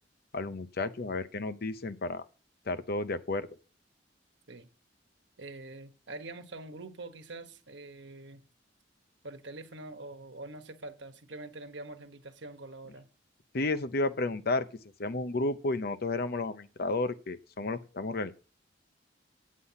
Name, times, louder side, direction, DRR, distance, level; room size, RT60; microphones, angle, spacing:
voice 1, 0.3-2.3 2.7-3.5 13.5-14.7 15.0-18.3, left 2 dB, 55° left, 0.8 m, -32 dB
voice 2, 5.4-8.4 9.2-13.1, right 2 dB, 70° right, 1.2 m, -45 dB
8.4 x 8.4 x 5.7 m
head